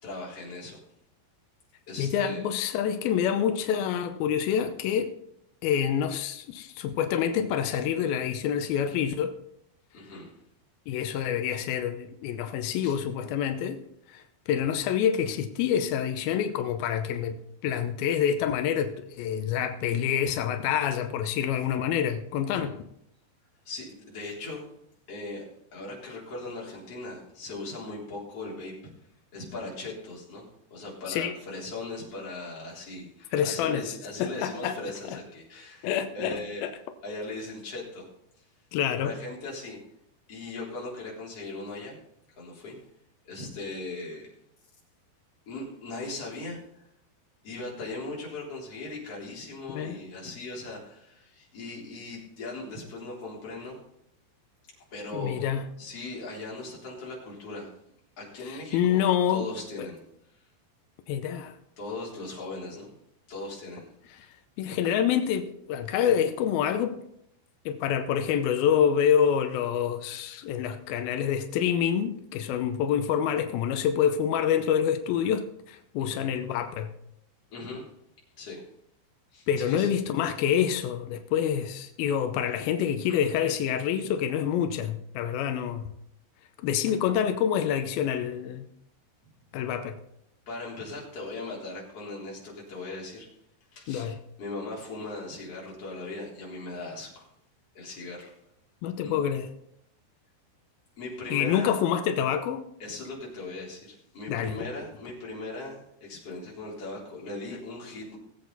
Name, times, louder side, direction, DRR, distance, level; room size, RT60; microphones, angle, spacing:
voice 1, 0.0-0.8 1.9-2.4 9.9-10.3 12.8-12.9 22.5-22.7 23.7-24.6 25.1-25.4 25.7-28.9 29.3-36.7 37.0-38.1 39.0-39.8 40.3-42.0 42.4-42.8 43.2-44.3 45.5-46.6 47.4-53.8 54.9-55.5 55.8-57.7 58.2-59.0 59.3-60.0 61.8-62.9 63.3-63.9 76.0-76.2 77.5-77.9 78.4-78.6 79.3-79.9 83.1-83.6 90.5-93.3 93.7-94.1 94.4-97.3 97.7-98.3 99.0-99.1 101.0-101.8 102.8-108.2, left 2 dB, 35° left, 4.1 m, -39 dB
voice 2, 2.0-5.1 5.6-9.3 10.9-13.8 14.1-17.4 17.6-22.8 31.1-31.4 33.3-33.8 34.2-34.8 35.1-35.2 35.8-36.7 38.7-39.1 49.7-50.0 55.1-55.7 58.5-59.5 59.8-59.9 61.1-61.5 64.2-64.3 64.6-67.0 67.7-76.9 79.5-85.9 86.6-88.7 89.5-90.0 93.9-94.2 98.8-99.5 101.3-102.7 104.3-104.6, left 9 dB, 90° left, 2.1 m, -27 dB
19.0 x 8.0 x 4.0 m
omnidirectional pair, 5.3 m